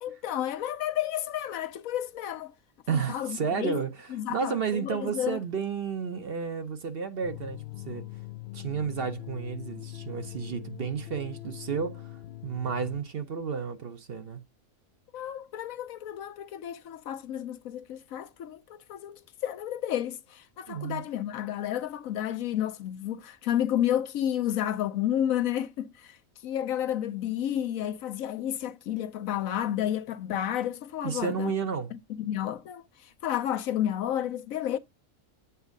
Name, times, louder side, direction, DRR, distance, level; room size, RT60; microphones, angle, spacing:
voice 1, 0.0-2.5 2.9-3.8 4.1-5.4 15.1-26.2 26.4-31.5 31.9-34.8, left 11 dB, 80° left, 1.1 m, -31 dB
voice 2, 2.9-8.1 8.5-14.4 20.7-21.0 31.0-31.9, right 6 dB, 50° right, 0.9 m, -32 dB
sound 1, 7.2-13.0, left 17 dB, 60° left, 0.7 m, -42 dB
8.2 x 3.5 x 5.1 m
omnidirectional pair, 1.4 m